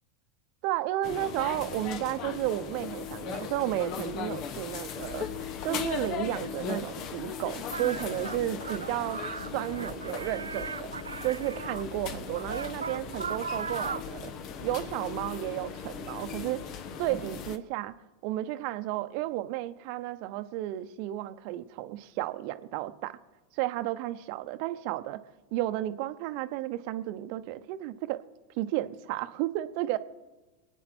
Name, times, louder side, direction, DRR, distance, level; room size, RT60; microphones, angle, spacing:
voice 1, 0.6-9.2 9.5-10.9 11.2-14.3 14.6-16.6 17.0-17.9 18.2-23.2 23.5-25.2 25.5-28.2 28.5-30.0, right 15 dB, 55° right, 12 dB, 0.9 m, -33 dB
sound 1, 1.0-17.6, left 7 dB, 45° left, 1.2 m, -38 dB
sound 2, 7.7-11.8 12.3-14.2, right 5 dB, 85° right, 0.4 m, -38 dB
24.5 x 9.1 x 4.4 m, 1.2 s
hypercardioid pair, 90°, 0 cm